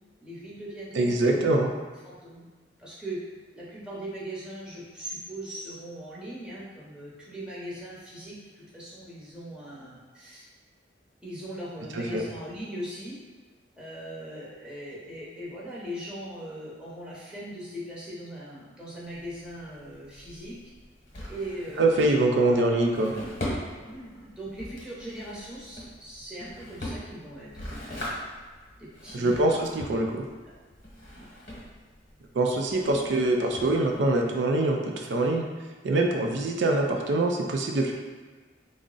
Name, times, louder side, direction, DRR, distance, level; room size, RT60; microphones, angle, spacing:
voice 1, 0.2-1.5 2.0-2.5 2.8-3.2 3.5-10.5 11.2-13.2 13.8-20.6 21.3-22.1 22.4-22.8 23.8-27.7 28.8-29.6 30.4-30.5 31.1-31.3, equal, 5° right, -8 dB, 0.8 m, -40 dB
voice 2, 0.9-1.7 11.9-12.2 21.8-23.1 29.1-30.3 32.3-35.4 35.8-37.9, right 2 dB, 90° right, 2 dB, 0.4 m, -24 dB
Drawer open or close, 19.0-34.2, equal, 45° left, 0.9 m, -41 dB
3.5 x 2.0 x 3.8 m, 1.4 s
head